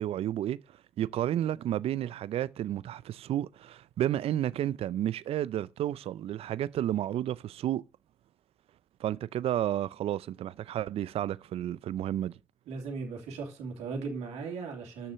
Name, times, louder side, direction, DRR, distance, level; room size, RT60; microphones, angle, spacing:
voice 1, 0.0-7.8 9.0-12.4, right 12 dB, 60° right, 0.4 m, -31 dB
voice 2, 12.7-15.1, right 4 dB, 80° right, 2.8 m, -37 dB
8.6 x 6.7 x 6.7 m
supercardioid pair, 60°, 11 cm